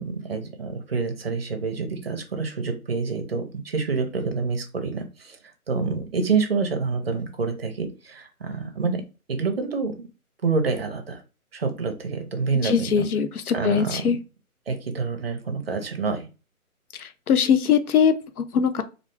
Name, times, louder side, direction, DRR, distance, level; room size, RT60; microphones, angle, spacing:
voice 1, 0.0-5.4 5.7-9.0 9.3-10.1 10.4-11.2 11.5-13.0 13.5-14.2 14.7-16.3, right 4 dB, 45° right, 0.5 m, -27 dB
voice 2, 12.6-14.2 17.0-18.8, left 7 dB, 75° left, 0.6 m, -22 dB
2.4 x 2.2 x 3.1 m
hypercardioid pair, 160°, 44 cm